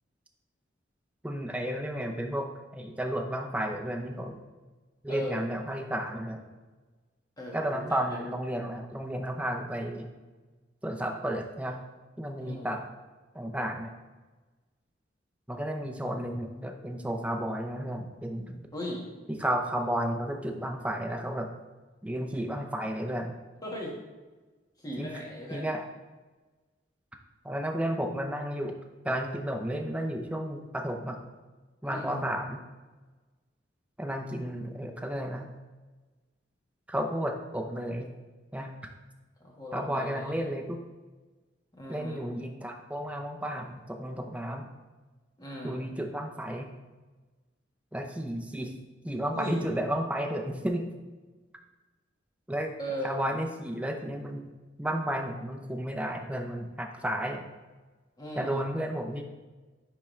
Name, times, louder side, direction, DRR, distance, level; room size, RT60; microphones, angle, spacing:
voice 1, 1.2-4.4 5.0-6.4 7.5-10.1 10.8-11.8 12.2-12.8 13.3-13.9 15.5-18.7 19.3-21.5 22.0-23.4 25.0-25.1 25.5-25.8 27.4-28.7 29.0-31.2 31.8-32.6 34.0-35.5 36.9-38.1 38.5-38.7 39.7-40.8 41.9-44.7 45.6-46.7 47.9-48.7 49.0-50.8 52.5-52.7 53.0-54.4 54.8-57.4 58.4-59.2, right 1 dB, 5° right, 3 dB, 0.6 m, -32 dB
voice 2, 5.1-5.4 7.4-8.2 12.4-12.7 18.7-19.0 23.6-23.9 24.8-25.7 31.8-32.2 39.4-40.3 41.8-42.2 45.4-45.8 49.3-49.6 52.8-53.1 58.2-58.6, left 1 dB, 20° left, -3 dB, 1.6 m, -38 dB
10.0 x 3.6 x 3.2 m, 1.2 s
head